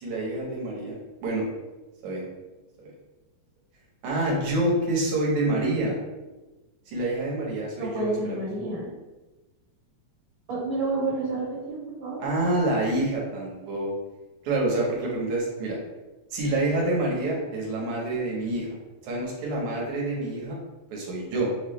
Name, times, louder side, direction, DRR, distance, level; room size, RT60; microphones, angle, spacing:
voice 1, 0.0-1.5 2.0-2.3 4.0-6.0 6.9-8.4 12.2-13.9 14.4-15.8 16.3-18.8 19.0-20.6 20.9-21.5, right 2 dB, 75° right, -3 dB, 2.4 m, -27 dB
voice 2, 7.8-8.9 10.5-12.2, right 3 dB, 55° right, -5 dB, 1.4 m, -29 dB
6.6 x 2.3 x 3.2 m, 1.1 s
omnidirectional pair, 3.4 m